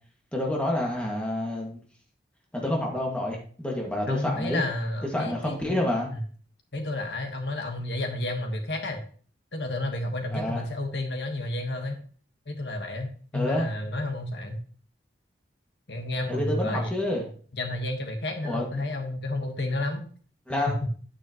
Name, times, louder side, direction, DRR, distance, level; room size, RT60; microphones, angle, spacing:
voice 1, 0.3-1.8 2.5-4.6 5.1-6.1 10.3-10.6 13.3-13.7 16.3-17.2 18.4-18.8 20.5-20.7, left 1 dB, 5° left, -2 dB, 2.0 m, -28 dB
voice 2, 4.1-5.8 6.7-9.0 9.5-12.0 12.5-14.6 15.9-16.9 17.5-20.1, left 2 dB, 70° left, 4 dB, 1.5 m, -31 dB
9.8 x 8.9 x 3.0 m, 0.43 s
head